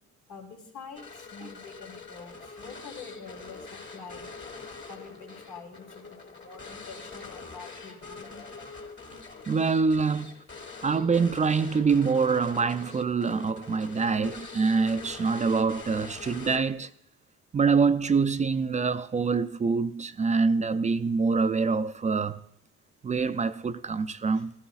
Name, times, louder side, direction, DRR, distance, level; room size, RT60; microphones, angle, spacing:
voice 1, 0.3-4.3 4.9-8.4 24.3-24.4, left 5 dB, 90° left, 2.6 m, -46 dB
sound 1, 1.0-16.9, left 4 dB, 35° left, 1.7 m, -44 dB
voice 2, 9.5-10.4 10.8-16.9 17.5-22.4 23.0-24.5, right 5 dB, 25° right, 0.4 m, -25 dB
16.0 x 13.0 x 2.4 m
cardioid pair, 90°, 30 cm